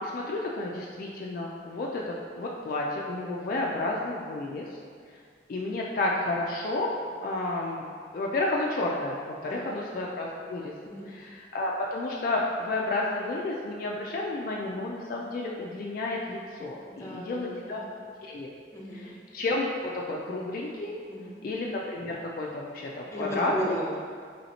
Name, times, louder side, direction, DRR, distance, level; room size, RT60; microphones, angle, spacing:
voice 1, 0.0-4.8 5.5-7.0 7.2-7.8 8.1-17.8 18.2-18.5 18.9-21.0 21.4-23.8, left 2 dB, 50° left, -2 dB, 0.3 m, -31 dB
voice 2, 16.9-17.9 18.7-19.1 21.1-21.4 23.1-24.0, equal, 15° left, -5 dB, 0.6 m, -35 dB
4.0 x 3.1 x 2.8 m, 2.1 s
head